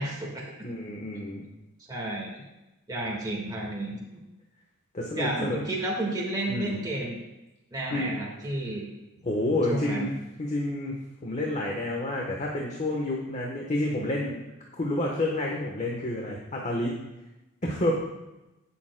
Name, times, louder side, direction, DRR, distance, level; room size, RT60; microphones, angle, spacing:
voice 1, 0.0-0.4 1.9-2.4 2.9-4.0 5.1-7.2 7.7-8.9 9.7-10.1, right 1 dB, 20° right, -3 dB, 1.6 m, -31 dB
voice 2, 0.6-1.5 4.9-5.6 6.5-6.8 7.9-8.3 9.2-10.1 10.4-10.9 11.2-14.4 14.8-17.0 17.6-17.9, left 1 dB, 35° left, -1 dB, 1.1 m, -29 dB
16.5 x 7.0 x 2.2 m, 0.99 s
head